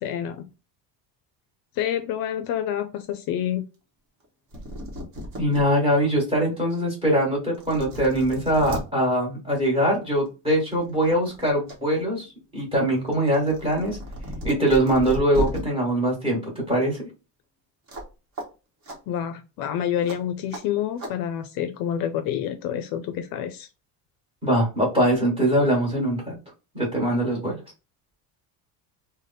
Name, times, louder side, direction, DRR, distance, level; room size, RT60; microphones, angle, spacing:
voice 1, 0.0-0.5 1.8-3.6 19.1-23.7, left 10 dB, 55° left, 0.5 m, -28 dB
sound 1, 4.2-4.3 4.5-5.6 6.2-6.3 7.1-7.2 7.5-8.8 10.1-10.3 10.7-11.8 12.1-15.6 17.9-18.1 18.4-18.5 18.8-19.0 20.1-20.2 20.5-20.6 21.0-21.1, equal, 40° right, 1.2 m, -34 dB
voice 2, 5.4-12.3 12.5-14.0 14.4-16.4 16.7-17.0 24.4-26.4 26.7-27.6, right 1 dB, 15° right, 1.5 m, -22 dB
3.3 x 2.2 x 3.9 m
cardioid pair, 175°, 42 cm